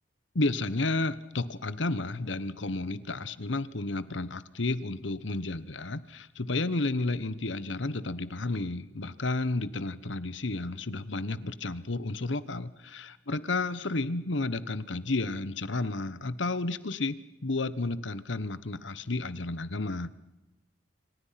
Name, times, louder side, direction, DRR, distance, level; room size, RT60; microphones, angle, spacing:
voice 1, 0.3-17.2 17.4-20.1, left 2 dB, 80° left, 16 dB, 1.2 m, -32 dB
27.0 x 26.0 x 5.9 m, 0.98 s
head